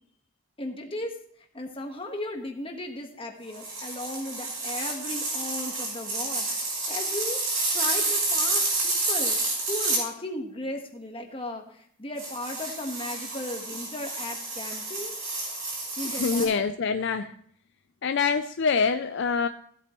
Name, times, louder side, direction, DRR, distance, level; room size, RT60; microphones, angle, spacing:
voice 1, 0.6-1.2 1.5-9.4 9.7-15.1 16.0-16.5, left 1 dB, 25° left, 3 dB, 1.3 m, -36 dB
sound 1, 3.5-10.0 12.2-16.4, right 2 dB, 75° right, 5.7 m, -29 dB
voice 2, 16.0-17.3 18.0-19.5, left 5 dB, 55° left, 9 dB, 0.4 m, -25 dB
16.0 x 8.4 x 3.1 m, 0.63 s
head